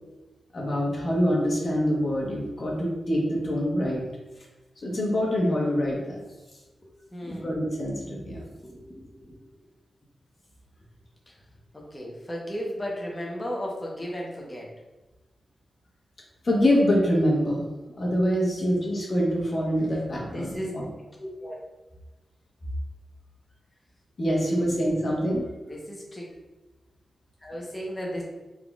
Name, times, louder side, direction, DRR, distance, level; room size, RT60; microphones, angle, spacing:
voice 1, 0.5-4.0 4.8-6.2 7.3-8.4 16.4-17.6 18.0-20.9 24.2-25.5, equal, 40° left, -3 dB, 1.0 m, -25 dB
voice 2, 7.1-7.6 8.1-8.2 8.6-9.3 11.3-11.4 11.7-14.7 20.2-20.7 21.2-21.5 24.4-25.0 25.6-26.3 27.4-28.2, equal, 15° left, -3 dB, 0.9 m, -35 dB
3.9 x 3.7 x 2.3 m, 1.1 s
wide cardioid pair, 160°, 0 cm